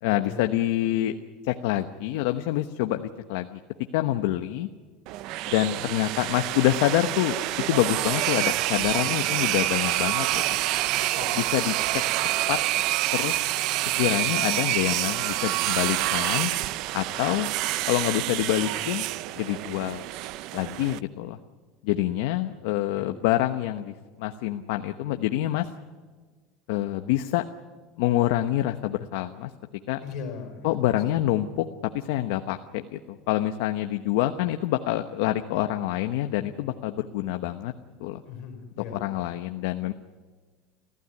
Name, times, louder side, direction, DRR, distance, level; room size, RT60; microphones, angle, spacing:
voice 1, 0.0-1.1 1.4-3.6 3.9-4.7 5.5-7.4 7.7-10.6 11.3-11.7 12.5-12.6 13.1-16.5 16.9-17.5 17.9-19.1 19.4-20.0 20.5-21.4 21.8-25.7 26.7-27.5 28.0-29.5 29.9-30.0 30.6-31.7 31.9-37.7 38.0-38.2 38.9-39.9, left 14 dB, 75° left, 7 dB, 1.0 m, -26 dB
sound 1, 5.1-21.0, right 16 dB, 55° right, 0.6 m, -27 dB
voice 2, 30.0-30.9 38.3-39.0, left 6 dB, 50° left, 6 dB, 5.1 m, -38 dB
28.0 x 15.0 x 9.7 m, 1.5 s
cardioid pair, 160°, 0 cm